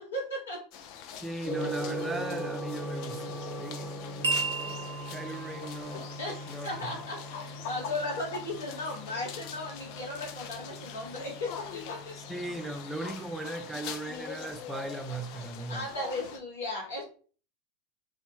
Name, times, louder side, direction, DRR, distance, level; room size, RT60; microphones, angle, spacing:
voice 1, 0.1-0.6 6.2-12.1 15.7-17.0, left 2 dB, 80° left, 0.8 m, -36 dB
sound 1, 0.7-16.4, left 7 dB, 55° left, 0.4 m, -43 dB
voice 2, 1.2-6.1 6.5-6.9 12.3-15.9, right 2 dB, 10° right, 0.4 m, -38 dB
Gong, 1.4-13.4, equal, 5° left, 1.0 m, -40 dB
sound 2, 4.2-8.9, right 4 dB, 80° right, 0.5 m, -37 dB
2.8 x 2.1 x 2.8 m
figure-of-eight pair, 85°, 0 cm